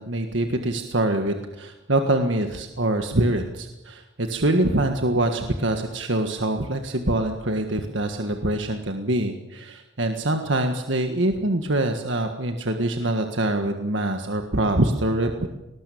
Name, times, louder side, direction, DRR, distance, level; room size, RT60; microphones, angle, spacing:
voice 1, 0.0-15.5, right 1 dB, 60° right, 5 dB, 1.7 m, -24 dB
20.5 x 19.0 x 8.6 m, 0.99 s
head